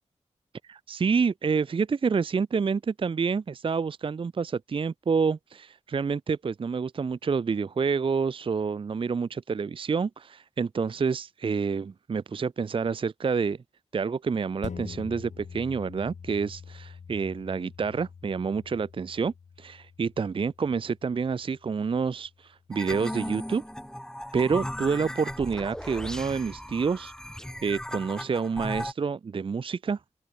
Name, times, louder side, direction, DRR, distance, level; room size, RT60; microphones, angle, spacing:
voice 1, 0.6-13.6 13.9-23.6 24.3-27.1 27.4-30.0, right 5 dB, 45° right, 0.4 m, -28 dB
sound 1, 14.6-23.4 23.9-24.0, left 6 dB, 80° left, 1.1 m, -45 dB
sound 2, 22.7-28.9, equal, 5° left, 2.6 m, -36 dB
open air
cardioid pair, 55°, 12 cm